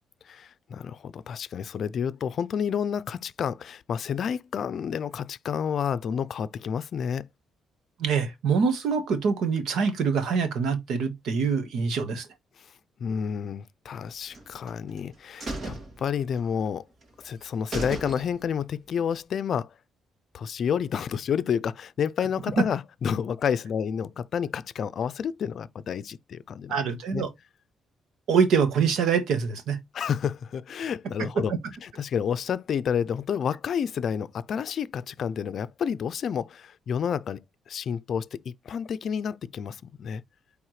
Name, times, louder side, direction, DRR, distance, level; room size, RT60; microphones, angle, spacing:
voice 1, 0.3-7.3 13.0-16.8 17.2-19.7 20.3-26.8 27.1-27.2 29.9-31.5 31.8-37.4 37.7-40.2, left 7 dB, 60° left, 0.5 m, -30 dB
voice 2, 8.0-12.3 26.7-27.3 28.3-29.8 31.2-31.4, right 6 dB, 75° right, 1.4 m, -25 dB
sound 1, 14.3-15.0 15.4-16.7 17.0-17.1 17.4-17.5 17.7-18.6 19.0-19.1, right 2 dB, 50° right, 2.3 m, -36 dB
8.9 x 3.5 x 3.2 m
cardioid pair, 90°, 0 cm